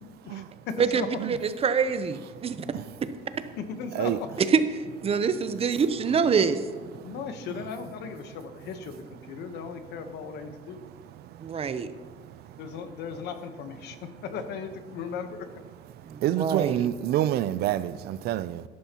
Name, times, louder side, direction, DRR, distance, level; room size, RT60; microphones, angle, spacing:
voice 1, 0.0-1.1 3.6-4.3 7.0-10.8 12.6-15.5, left 6 dB, 80° left, 1.1 m, -37 dB
voice 2, 0.8-2.6 4.5-4.6 5.0-6.6 11.4-11.9 16.0-16.9, right 6 dB, 35° right, 0.7 m, -25 dB
voice 3, 16.2-18.6, right 12 dB, 70° right, 0.5 m, -28 dB
12.5 x 11.0 x 3.0 m
cardioid pair, 110°, 17 cm